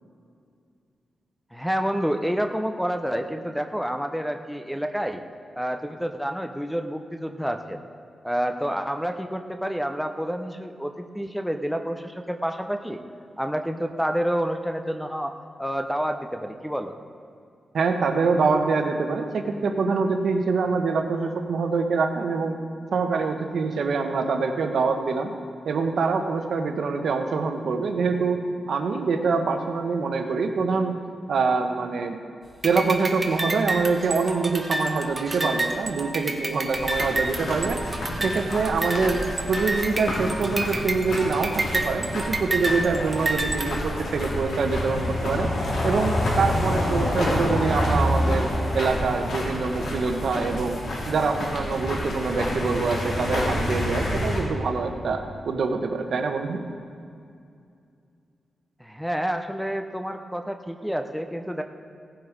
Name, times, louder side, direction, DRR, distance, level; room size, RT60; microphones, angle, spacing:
voice 1, 1.5-5.2 5.5-7.8 8.2-13.0 13.4-15.3 15.6-17.0 58.8-61.6, equal, ahead, 6 dB, 0.6 m, -28 dB
voice 2, 17.7-22.6 22.9-25.3 25.6-31.0 31.3-32.2 32.6-37.8 38.2-45.5 45.8-50.8 51.1-56.6, right 4 dB, 75° right, 5 dB, 1.1 m, -25 dB
sound 1, 32.6-43.7, right 2 dB, 25° right, 1.1 m, -30 dB
sound 2, 36.7-54.4, left 1 dB, 80° left, 3.5 m, -28 dB
17.0 x 7.8 x 5.1 m, 2.4 s
wide cardioid pair, 130°, 0 cm